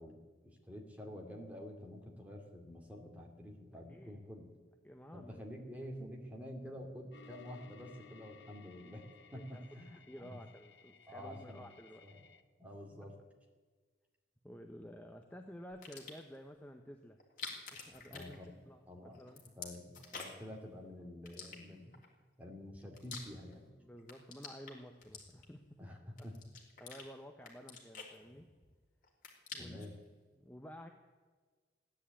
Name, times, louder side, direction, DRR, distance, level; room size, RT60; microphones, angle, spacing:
voice 1, 0.0-4.5 5.1-10.4 11.1-11.7 12.0-12.2 12.6-13.2 18.1-18.6 18.9-19.2 19.6-21.9 22.4-23.7 25.8-26.4 29.6-30.0, equal, 10° right, 1 dB, 2.5 m, -48 dB
voice 2, 3.9-4.2 4.8-5.4 9.3-9.6 10.1-12.2 14.4-17.2 17.7-18.4 18.7-19.4 23.7-25.6 26.8-28.5 29.5-29.8 30.3-30.9, equal, 10° left, 4 dB, 0.8 m, -52 dB
sound 1, 7.1-12.4, left 6 dB, 85° left, 1.1 m, -60 dB
sound 2, 15.7-16.4 17.2-18.9 19.1-20.5 21.2-22.1 22.6-23.7 24.0-25.7 26.2-27.1 27.4-28.7 29.0-29.9, left 5 dB, 50° left, 3.2 m, -49 dB
15.5 x 10.0 x 8.4 m, 1.4 s
head